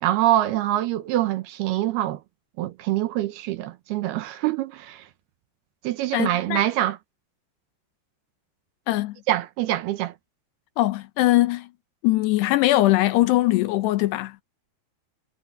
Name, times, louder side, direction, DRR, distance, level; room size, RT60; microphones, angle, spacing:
voice 1, 0.0-2.2 2.6-5.0 5.8-7.0 9.3-10.1, right 14 dB, 75° right, 2.7 m, -24 dB
voice 2, 6.1-6.6 8.9-9.2 10.8-11.7 12.0-14.4, left 16 dB, 80° left, 3.0 m, -21 dB
omnidirectional pair, 4.9 m